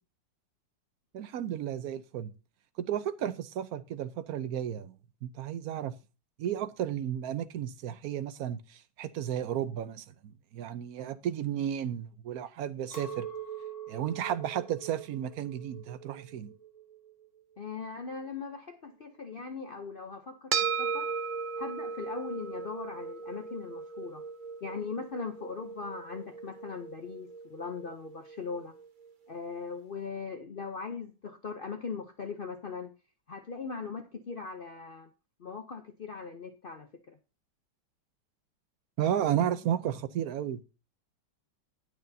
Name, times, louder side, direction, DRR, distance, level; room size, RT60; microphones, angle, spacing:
voice 1, 1.1-2.3 2.8-5.0 5.2-5.9 6.4-13.3 13.9-16.5 39.0-40.6, right 10 dB, 65° right, 1.0 m, -33 dB
Chink clink, 12.9-18.3, right 8 dB, 40° left, 3.4 m, -44 dB
voice 2, 17.6-21.1 21.6-24.2 24.6-28.7 29.3-32.9 33.3-35.1 35.4-37.2, left 5 dB, 75° left, 0.5 m, -40 dB
sound 1, 20.5-29.1, right 5 dB, 45° right, 0.7 m, -37 dB
18.5 x 6.4 x 2.7 m
omnidirectional pair, 1.9 m